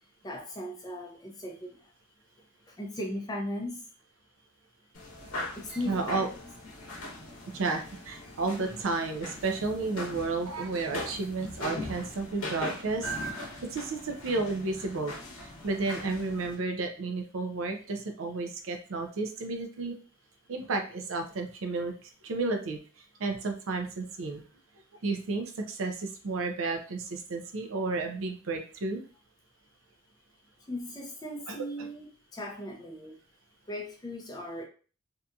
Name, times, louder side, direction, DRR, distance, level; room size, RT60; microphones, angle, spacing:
voice 1, 0.2-1.8 2.7-3.8 5.5-6.2 30.7-33.2 33.7-34.6, left 1 dB, 20° left, -1 dB, 0.5 m, -37 dB
sound 1, 5.0-16.6, left 1 dB, 85° left, 0.9 m, -40 dB
voice 2, 5.9-6.3 7.5-15.1 15.4-20.0 20.5-22.8 23.2-24.4 25.0-29.0 31.5-31.6, right 3 dB, 65° right, 5 dB, 0.5 m, -32 dB
2.7 x 2.5 x 2.2 m, 0.38 s
head